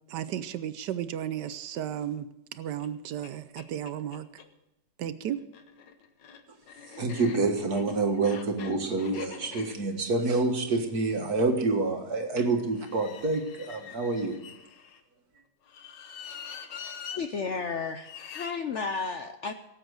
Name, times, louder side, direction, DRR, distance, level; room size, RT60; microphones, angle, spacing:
voice 1, 0.1-2.3 2.5-4.3 5.0-5.4, right 10 dB, 75° right, 14 dB, 1.3 m, -34 dB
sound 1, 2.8-2.9 3.2-3.3 3.6-4.5 5.4-11.6 12.7-15.0 15.6-17.2 18.0-18.5, left 7 dB, 85° left, 1.7 m, -45 dB
voice 2, 6.9-14.4, right 3 dB, 60° right, 4 dB, 2.1 m, -27 dB
voice 3, 17.1-19.5, left 5 dB, 60° left, 8 dB, 0.8 m, -33 dB
18.0 x 8.0 x 6.3 m, 0.91 s
omnidirectional pair, 1.9 m